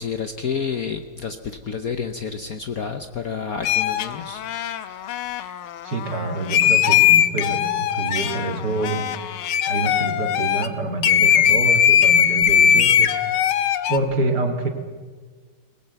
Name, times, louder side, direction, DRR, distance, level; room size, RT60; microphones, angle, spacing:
voice 1, 0.0-4.4, left 6 dB, 55° left, 7 dB, 1.1 m, -29 dB
sound 1, 3.6-10.7 11.0-14.0, left 9 dB, 80° left, 1.7 m, -19 dB
voice 2, 5.8-9.0 9.7-13.1 13.9-14.7, right 2 dB, 50° right, 3 dB, 2.6 m, -26 dB
20.0 x 20.0 x 7.9 m, 1.5 s
omnidirectional pair, 2.3 m